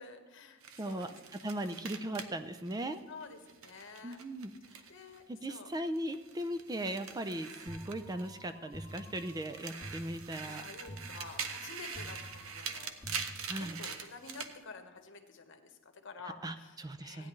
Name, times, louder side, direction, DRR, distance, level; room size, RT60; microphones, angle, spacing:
voice 1, 0.0-1.6 3.1-4.2 4.9-5.7 6.1-6.2 7.0-7.2 10.4-13.2 13.5-17.3, left 4 dB, 65° left, 6 dB, 1.2 m, -50 dB
sound 1, 0.6-5.2 5.5-8.5 8.8-14.5, right 6 dB, 70° right, 0.9 m, -44 dB
voice 2, 0.8-1.1 1.4-3.0 4.0-4.8 5.3-10.6 13.5-13.8 16.4-17.3, right 1 dB, 20° right, 10 dB, 0.4 m, -38 dB
sound 2, 7.7-14.0, equal, 20° left, 1.7 m, -50 dB
16.0 x 9.7 x 3.2 m, 1.3 s
head